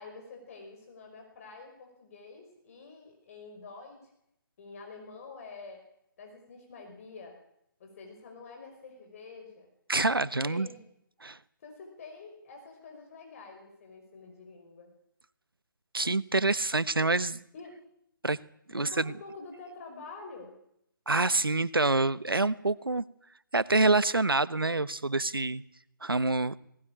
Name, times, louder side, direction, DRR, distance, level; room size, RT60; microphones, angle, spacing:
voice 1, 0.0-4.1 4.6-5.8 6.2-7.4 7.8-9.7 10.2-10.8 11.6-14.9 17.5-17.8 18.7-20.5, left 4 dB, 40° left, 3 dB, 5.4 m, -47 dB
voice 2, 9.9-10.7 11.2-11.4 15.9-17.4 18.2-18.4 18.7-19.1 21.1-23.0 23.5-25.6 26.0-26.5, right 3 dB, 90° right, 17 dB, 1.1 m, -26 dB
20.0 x 19.0 x 8.8 m, 0.76 s
figure-of-eight pair, 145°, 12 cm